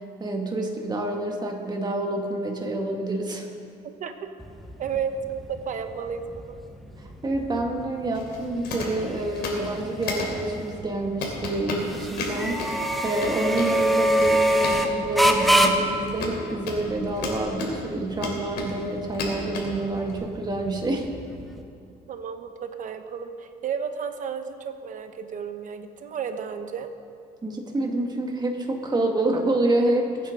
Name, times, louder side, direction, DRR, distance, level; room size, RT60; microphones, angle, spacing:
voice 1, 0.2-3.5 7.0-21.1 27.4-30.3, right 2 dB, 25° right, 1 dB, 2.0 m, -27 dB
voice 2, 4.0-4.3 4.8-6.6 22.1-26.9, right 7 dB, 50° right, 8 dB, 1.1 m, -32 dB
sound 1, 4.4-21.6, equal, ahead, 1.1 m, -27 dB
sound 2, 8.1-8.4 8.6-8.9 9.3-9.7 10.0-10.3 10.7-10.8 11.2-12.7 13.1-13.7 14.0-14.3 14.6-14.8 15.1-17.7 18.1-18.8 19.1-19.7 20.1-20.2, left 4 dB, 75° left, 3.0 m, -33 dB
22.0 x 9.0 x 3.9 m, 2.6 s
cardioid pair, 110°, 17 cm